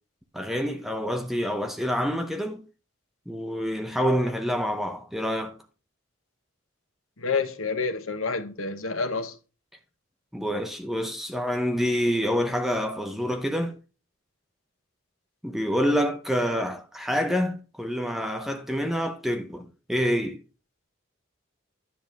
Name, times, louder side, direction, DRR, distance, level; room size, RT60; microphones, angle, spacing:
voice 1, 0.3-2.6 3.3-5.6 10.3-13.8 15.4-20.4, equal, ahead, 0.7 m, -27 dB
voice 2, 7.2-9.3, left 4 dB, 85° left, 1.1 m, -28 dB
10.0 x 6.9 x 3.5 m
head